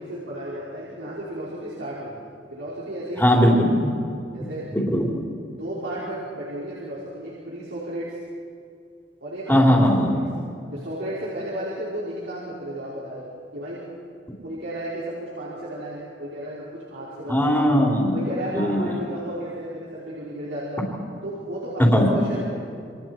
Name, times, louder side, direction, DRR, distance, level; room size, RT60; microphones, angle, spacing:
voice 1, 0.0-2.2 2.5-3.6 4.3-4.7 5.5-8.2 9.2-10.2 10.7-13.8 14.4-17.6 18.1-20.8 21.2-22.6, right 1 dB, 75° right, -9 dB, 5.3 m, -33 dB
voice 2, 3.2-3.9 4.7-5.1 9.5-10.1 17.3-18.1 18.5-18.9 21.9-22.2, equal, 10° left, -2 dB, 3.6 m, -19 dB
29.0 x 26.5 x 4.6 m, 2.3 s
head